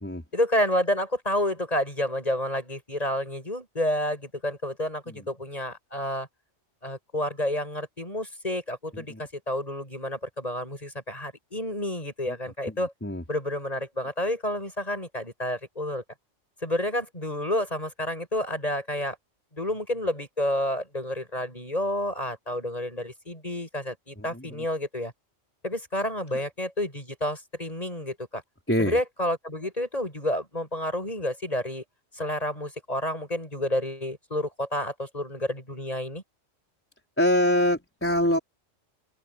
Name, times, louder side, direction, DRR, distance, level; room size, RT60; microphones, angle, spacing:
voice 1, 0.3-6.3 6.8-12.9 13.3-16.0 16.6-19.2 19.5-25.1 25.6-28.4 28.8-31.8 32.1-36.2, left 1 dB, 30° left, 8.2 m, -30 dB
voice 2, 24.2-24.6 28.7-29.0 37.2-38.4, equal, 10° left, 4.2 m, -25 dB
open air
omnidirectional pair, 1.3 m